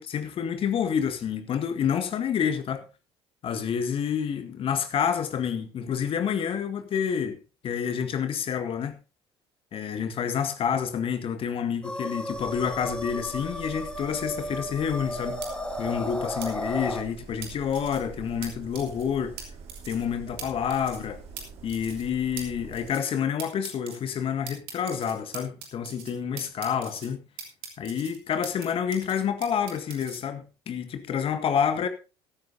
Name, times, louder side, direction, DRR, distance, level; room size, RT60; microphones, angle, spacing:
voice 1, 0.0-2.9 3.4-7.4 7.6-9.0 9.7-15.4 15.8-19.4 19.9-21.2 21.6-27.2 27.8-31.9, left 7 dB, 45° left, 1.8 m, -28 dB
sound 1, 11.8-17.0, left 1 dB, 5° left, 2.1 m, -34 dB
sound 2, 12.3-22.9, right 4 dB, 50° right, 3.1 m, -46 dB
sound 3, 15.4-15.5 16.4-16.5 17.4-18.0 18.4-18.5 18.7-19.0 19.4-19.5 19.7-20.0 20.4-20.5 20.7-21.1 21.4-21.5 21.7-22.0 22.4-22.5 22.7-23.1 23.4-24.0 24.5-26.1 26.4-27.1 27.4-28.7 28.9-30.2, right 7 dB, 70° right, 3.1 m, -41 dB
15.5 x 13.5 x 2.8 m
figure-of-eight pair, 55°, 13 cm